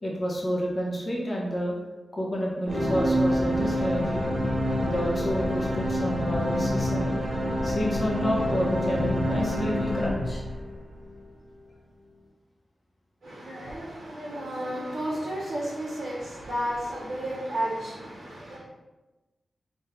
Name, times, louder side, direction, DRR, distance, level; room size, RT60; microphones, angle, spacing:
voice 1, 0.0-1.7 2.1-4.3 4.7-7.2 7.6-10.4, equal, 35° left, -4 dB, 1.3 m, -30 dB
sound 1, 2.7-11.1, equal, 50° right, 1.4 m, -27 dB
voice 2, 13.2-18.6, right 1 dB, 70° right, -6 dB, 1.3 m, -32 dB
4.4 x 3.2 x 3.4 m, 1.1 s
wide cardioid pair, 95°, 0 cm